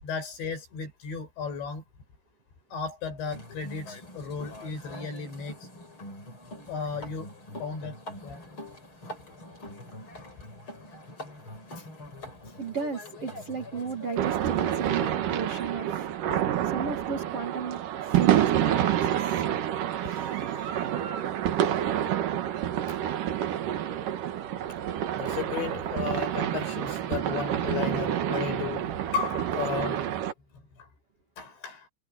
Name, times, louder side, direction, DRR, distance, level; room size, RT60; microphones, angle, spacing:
voice 1, 0.0-1.8 2.7-5.6 6.7-7.3 7.6-8.0 8.2-8.4 12.4-12.5 16.3-16.4 19.9-21.2 25.1-30.2 31.4-31.9, left 6 dB, 65° left, 8.4 m, -35 dB
sound 1, 3.3-15.1, left 1 dB, 25° left, 6.2 m, -44 dB
voice 2, 12.6-16.1 16.6-19.4, right 5 dB, 45° right, 2.0 m, -35 dB
sound 2, 14.2-30.3, right 11 dB, 65° right, 2.2 m, -28 dB
omnidirectional pair, 5.7 m